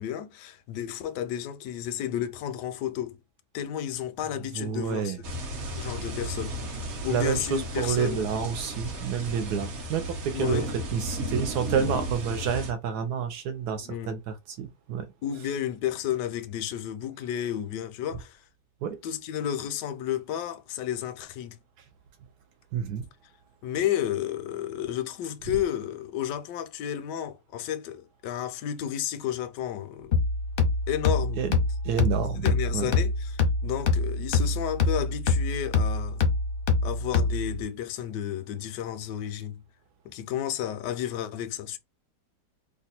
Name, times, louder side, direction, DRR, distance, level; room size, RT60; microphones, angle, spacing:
voice 1, 0.0-3.2 3.5-5.2 5.8-8.3 10.3-10.7 11.8-12.0 13.8-14.1 15.2-18.4 19.0-21.6 23.6-30.1 30.9-31.4 32.4-36.2 36.8-39.6 40.0-41.8, left 10 dB, 85° left, 1.2 m, -32 dB
voice 2, 4.5-5.2 7.1-15.1 18.8-19.0 22.7-23.1 31.4-31.6 31.8-32.9, right 7 dB, 75° right, 1.1 m, -29 dB
sound 1, 5.2-12.7, right 1 dB, 50° right, 1.0 m, -34 dB
sound 2, 30.1-37.6, left 3 dB, 55° left, 0.6 m, -25 dB
3.0 x 2.3 x 4.1 m
omnidirectional pair, 1.8 m